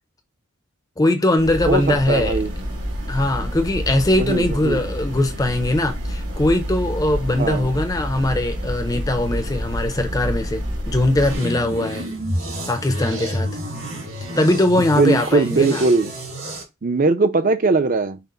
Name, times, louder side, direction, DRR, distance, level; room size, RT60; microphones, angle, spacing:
voice 1, 1.0-2.4 3.1-12.1 12.7-13.5 14.4-15.9, left 1 dB, 15° left, 0.5 m, -21 dB
sound 1, 1.4-11.4, equal, 85° right, 2.9 m, -28 dB
voice 2, 1.7-2.5 4.1-4.9 7.4-7.7 14.9-16.1 16.8-18.2, right 3 dB, 40° right, 0.5 m, -20 dB
sound 2, 11.2-16.6, equal, 70° right, 1.9 m, -29 dB
5.9 x 2.1 x 3.8 m
head